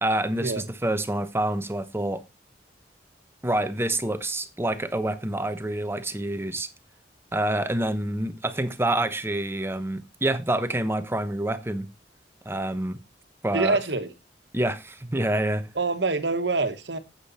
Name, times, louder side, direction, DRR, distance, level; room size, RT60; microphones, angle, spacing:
voice 1, 0.0-2.2 3.4-6.7 7.3-11.9 12.4-13.0 13.4-13.8 14.5-15.7, right 1 dB, 15° right, 1.0 m, -27 dB
voice 2, 13.5-14.1 15.7-17.0, right 3 dB, 75° right, 1.4 m, -25 dB
9.4 x 8.4 x 4.2 m
head